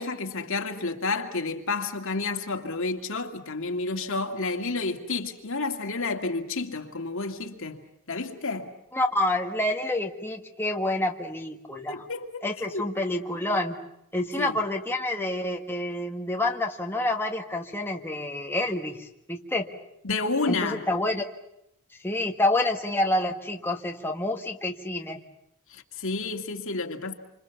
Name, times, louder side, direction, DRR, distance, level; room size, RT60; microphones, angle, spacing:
voice 1, 0.0-8.7 11.9-12.9 14.4-14.6 20.0-20.9 25.7-27.1, left 3 dB, 65° left, 2.4 m, -30 dB
voice 2, 8.9-12.0 12.4-13.8 14.1-19.7 20.5-21.2 22.0-25.2, left 1 dB, 10° left, 1.6 m, -28 dB
28.0 x 26.5 x 7.1 m
head